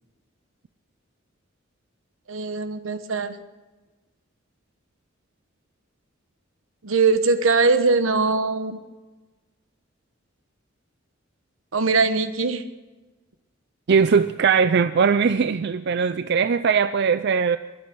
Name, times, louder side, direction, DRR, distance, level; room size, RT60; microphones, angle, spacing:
voice 1, 2.3-3.4 6.8-8.8 11.7-12.6, right 4 dB, 85° right, 10 dB, 1.1 m, -21 dB
voice 2, 13.9-17.6, right 6 dB, 55° right, 12 dB, 0.4 m, -20 dB
22.5 x 8.5 x 6.1 m, 1.2 s
head